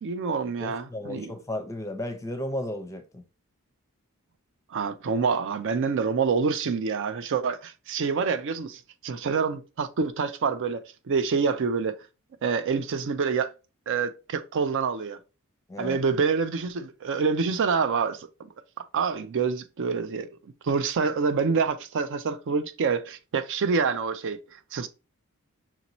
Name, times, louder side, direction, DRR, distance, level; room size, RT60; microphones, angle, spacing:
voice 1, 0.0-1.3 4.7-12.0 12.4-13.5 13.9-15.2 15.8-18.3 18.8-20.3 20.6-24.9, right 5 dB, 55° right, 0.4 m, -27 dB
voice 2, 0.6-3.2 15.7-16.0, left 1 dB, 15° left, 0.6 m, -34 dB
5.9 x 2.7 x 2.9 m
head